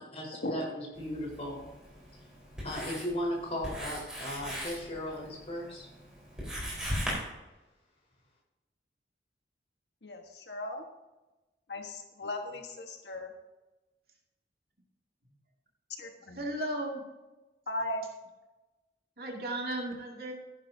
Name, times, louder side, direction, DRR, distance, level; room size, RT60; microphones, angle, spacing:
voice 1, 0.1-1.6 2.6-5.9, left 1 dB, 35° left, -2 dB, 4.5 m, -36 dB
Writing, 0.9-7.1, equal, 5° right, 4.4 m, -40 dB
voice 2, 10.0-10.8 11.7-13.3 16.0-16.4 17.7-18.1, left 1 dB, 75° left, 3 dB, 1.4 m, -37 dB
voice 3, 16.3-17.0 19.2-20.3, right 1 dB, 60° right, 0 dB, 2.3 m, -35 dB
15.0 x 10.5 x 2.8 m, 1.1 s
head